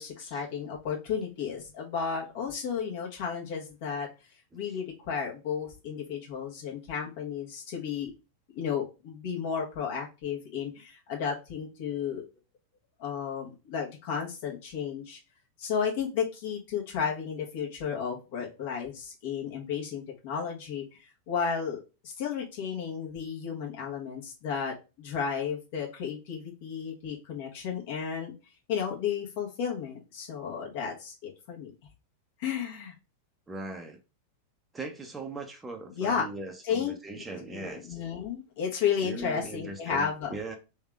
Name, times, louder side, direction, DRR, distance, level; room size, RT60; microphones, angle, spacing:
voice 1, 0.0-4.1 4.5-8.1 8.5-12.2 13.0-15.2 15.6-20.8 21.3-28.3 28.7-31.7 32.4-32.9 35.9-36.3 36.6-36.9 37.5-40.6, left 7 dB, 50° left, 1.4 m, -33 dB
voice 2, 33.5-34.0 34.7-38.0 39.0-40.6, right 2 dB, 10° right, 0.8 m, -39 dB
3.6 x 3.5 x 3.5 m
figure-of-eight pair, 90°, 0 cm